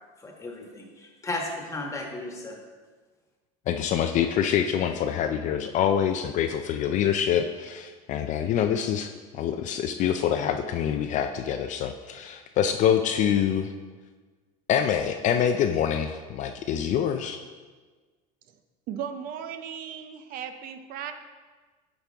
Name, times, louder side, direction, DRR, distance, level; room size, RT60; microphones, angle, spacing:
voice 1, 0.2-2.6, left 2 dB, 15° left, 1 dB, 1.4 m, -35 dB
voice 2, 3.7-13.7 14.7-17.4, left 9 dB, 45° left, 6 dB, 0.4 m, -25 dB
voice 3, 18.9-21.1, right 8 dB, 50° right, 8 dB, 0.6 m, -36 dB
9.0 x 5.3 x 3.4 m, 1.4 s
supercardioid pair, 120°, 18 cm